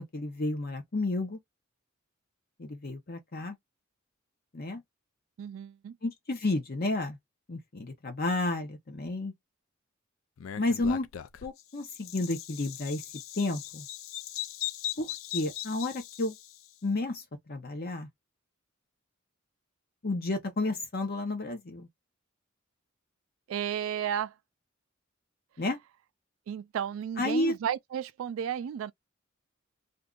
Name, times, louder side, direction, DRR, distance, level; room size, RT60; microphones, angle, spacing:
voice 1, 0.0-1.4 2.6-3.6 4.5-4.8 6.0-7.2 7.5-9.3 10.6-11.1 11.4-13.0 13.4-13.8 15.0-15.1 15.3-16.4 16.8-18.1 20.0-21.9 25.6-25.8 27.2-27.5, left 2 dB, 50° left, 0.8 m, -31 dB
voice 2, 5.4-6.0 23.5-24.3 26.5-28.9, right 9 dB, 80° right, 0.3 m, -33 dB
Bird vocalization bird call bird song, 10.4-16.7, left 12 dB, 75° left, 0.4 m, -39 dB
2.6 x 2.4 x 3.6 m
head